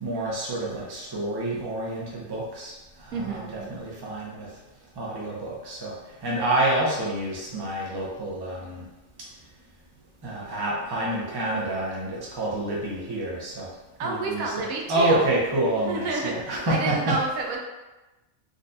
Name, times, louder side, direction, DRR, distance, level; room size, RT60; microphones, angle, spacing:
voice 1, 0.0-2.7 3.1-4.5 5.0-5.9 6.2-8.8 10.2-13.7 14.0-17.2, right 1 dB, 25° right, -5 dB, 0.5 m, -28 dB
voice 2, 3.1-3.7 14.0-15.3 15.8-17.6, right 3 dB, 85° right, 0 dB, 1.0 m, -30 dB
3.9 x 2.3 x 2.6 m, 1.1 s
omnidirectional pair, 1.4 m